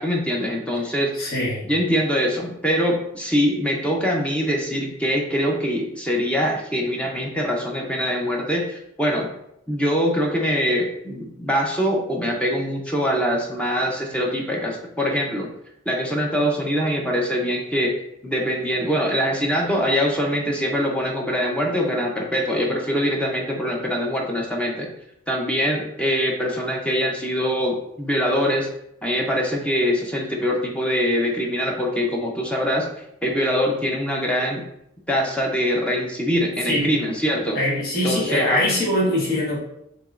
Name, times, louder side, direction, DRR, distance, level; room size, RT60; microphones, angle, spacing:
voice 1, 0.0-1.3 1.6-9.3 9.7-15.5 15.9-17.9 18.2-24.9 25.3-28.7 29.0-32.9 33.2-34.7 35.1-37.6 38.0-38.6, equal, 5° left, 0 dB, 0.6 m, -23 dB
voice 2, 1.1-1.6 36.6-36.9 37.5-39.6, left 1 dB, 50° left, -5 dB, 1.5 m, -22 dB
7.1 x 2.9 x 2.5 m, 0.78 s
head